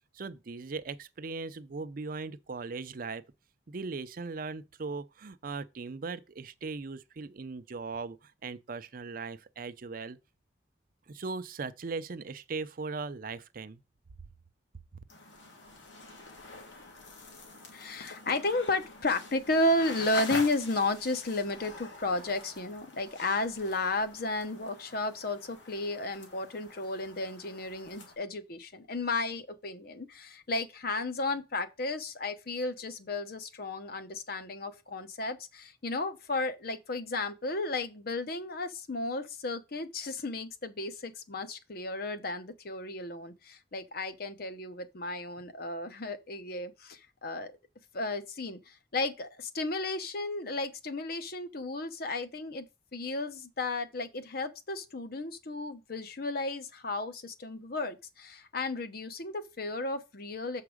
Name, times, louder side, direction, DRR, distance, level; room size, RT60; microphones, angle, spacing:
voice 1, 0.1-3.2 3.7-10.2 11.1-13.8, right 4 dB, 50° right, 0.5 m, -39 dB
sound 1, 15.1-28.1, left 2 dB, 85° left, 2.0 m, -45 dB
voice 2, 17.7-47.5 47.9-52.7 52.9-60.6, left 2 dB, 55° left, 0.8 m, -33 dB
7.1 x 4.8 x 4.9 m
head